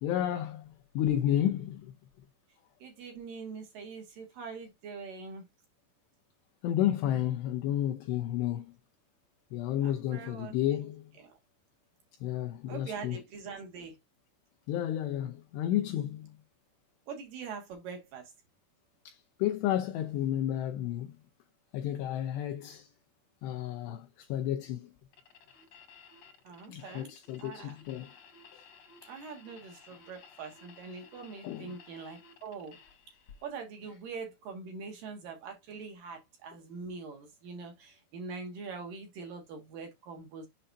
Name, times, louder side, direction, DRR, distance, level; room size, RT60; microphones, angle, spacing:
voice 1, 0.0-1.9 6.6-8.7 9.5-11.0 12.2-13.2 14.7-16.3 19.1-21.2 21.7-22.9 23.4-24.9 26.7-28.1 31.4-31.7, left 11 dB, 90° left, 2.4 m, -31 dB
voice 2, 2.8-5.4 9.8-10.5 11.2-11.4 12.7-14.0 17.1-18.3 26.4-27.1 27.4-27.8 29.0-32.8 33.4-40.5, right 5 dB, 70° right, 2.2 m, -43 dB
sound 1, 25.1-33.5, left 5 dB, 55° left, 1.7 m, -56 dB
7.8 x 5.6 x 2.6 m
omnidirectional pair, 5.8 m